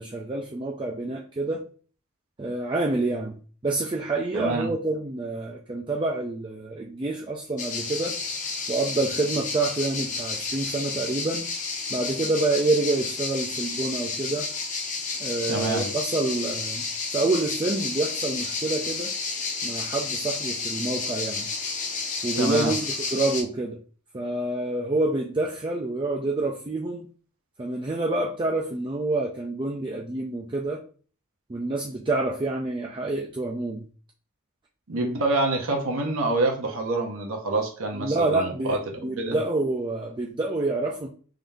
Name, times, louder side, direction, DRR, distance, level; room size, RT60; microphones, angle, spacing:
voice 1, 0.0-1.6 2.4-3.4 3.6-8.2 8.7-11.5 11.9-14.5 15.2-16.8 17.1-19.1 19.6-21.5 22.2-23.8 24.1-27.1 27.6-30.8 31.5-33.9 37.9-38.8 39.0-41.1, right 2 dB, 20° right, -1 dB, 0.4 m, -27 dB
voice 2, 4.3-4.7 15.5-15.9 22.4-22.8 34.9-38.8 39.2-39.4, right 2 dB, 65° right, 1 dB, 0.8 m, -26 dB
sound 1, 7.6-23.4, left 4 dB, 35° left, 0.7 m, -31 dB
3.7 x 2.7 x 3.4 m, 0.41 s
head